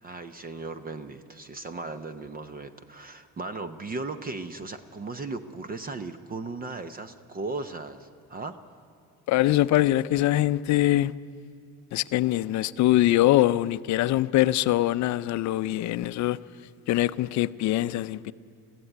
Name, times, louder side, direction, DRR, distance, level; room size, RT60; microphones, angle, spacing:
voice 1, 0.0-8.6, right 3 dB, 25° right, 0.6 m, -37 dB
voice 2, 9.3-11.1 11.9-16.4 16.9-18.3, left 15 dB, 50° left, 0.5 m, -23 dB
21.5 x 15.0 x 9.9 m
cardioid pair, 155°, 35 cm